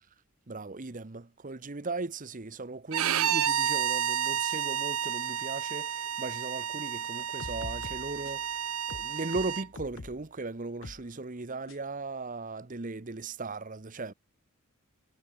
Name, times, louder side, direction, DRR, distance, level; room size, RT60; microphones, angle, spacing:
voice 1, 0.5-14.1, right 3 dB, 35° right, 0.9 m, -38 dB
Bowed string instrument, 2.9-9.7, right 9 dB, 80° right, 0.9 m, -31 dB
sound 1, 7.2-8.5 8.9-10.2 10.8-11.1 11.7-11.8, left 3 dB, 60° left, 0.8 m, -44 dB
head